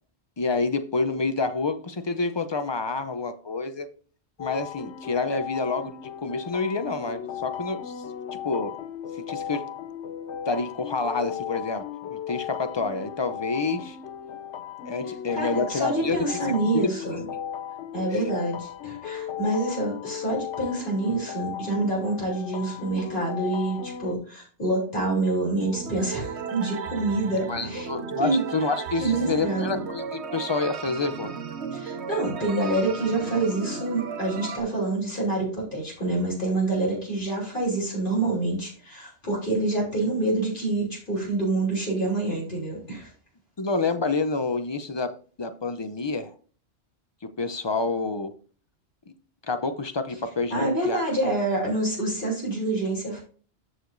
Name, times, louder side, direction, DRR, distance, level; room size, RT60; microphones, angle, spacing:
voice 1, 0.4-3.9 4.4-8.0 8.4-8.8 9.3-9.6 10.5-11.8 12.1-14.0 14.8-16.2 16.7-16.8 18.1-18.3 27.5-31.4 43.6-46.3 47.2-48.3 49.1-49.2 49.5-51.0, left 3 dB, 35° left, 9 dB, 0.5 m, -28 dB
sound 1, 4.4-24.2, left 9 dB, 85° left, 0.9 m, -36 dB
voice 2, 15.3-17.2 17.9-27.9 28.2-28.4 29.0-29.8 31.7-43.1 50.5-53.2, right 2 dB, 50° left, -4 dB, 3.4 m, -27 dB
sound 2, 25.6-34.6, right 5 dB, 75° right, 1.1 m, -35 dB
13.5 x 4.8 x 2.6 m, 0.41 s
omnidirectional pair, 1.1 m